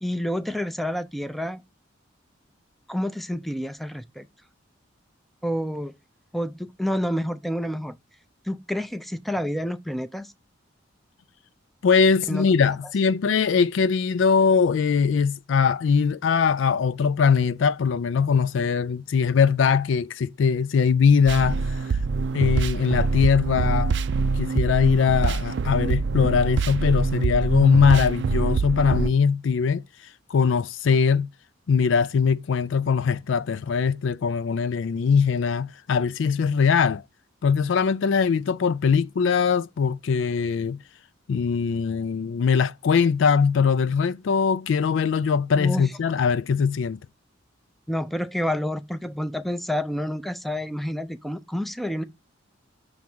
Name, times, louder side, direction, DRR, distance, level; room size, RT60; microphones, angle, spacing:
voice 1, 0.0-1.6 2.9-4.3 5.4-5.9 6.3-8.0 8.4-10.3 12.3-12.8 45.6-45.9 47.9-52.0, equal, ahead, 0.5 m, -29 dB
voice 2, 11.8-21.6 22.3-23.9 24.4-29.8 30.3-31.3 31.7-37.0 37.4-40.8 41.3-47.0, left 6 dB, 70° left, 0.4 m, -21 dB
sound 1, 21.3-29.1, right 4 dB, 60° right, 0.4 m, -25 dB
6.3 x 3.5 x 6.0 m
head